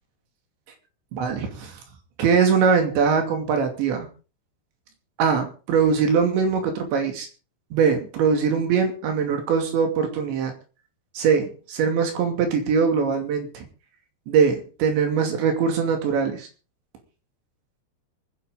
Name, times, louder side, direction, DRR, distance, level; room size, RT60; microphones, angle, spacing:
voice 1, 1.1-1.8 2.2-4.1 5.2-7.3 7.7-10.5 11.2-13.7 14.3-16.5, right 6 dB, 85° right, 4 dB, 4.9 m, -22 dB
24.0 x 10.5 x 3.9 m, 0.36 s
omnidirectional pair, 5.0 m